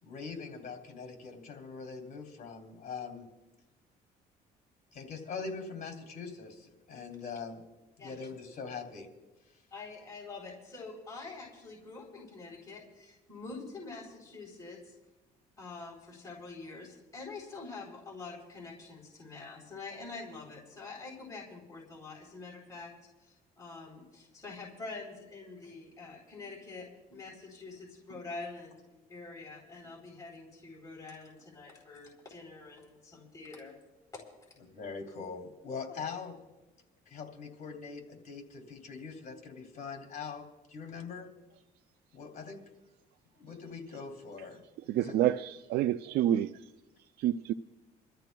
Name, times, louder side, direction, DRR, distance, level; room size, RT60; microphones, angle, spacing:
voice 1, 0.0-3.3 4.9-7.6 8.0-9.1 34.7-36.4 37.1-41.3 42.1-42.6 43.3-44.6 45.0-45.2, left 5 dB, 45° left, 2.9 m, -42 dB
voice 2, 9.7-14.9 15.6-28.8 29.1-33.8, left 3 dB, 20° left, 3.5 m, -46 dB
voice 3, 44.9-46.7 47.2-47.5, right 12 dB, 70° right, 0.4 m, -28 dB
28.5 x 13.5 x 2.3 m
cardioid pair, 110°, 17 cm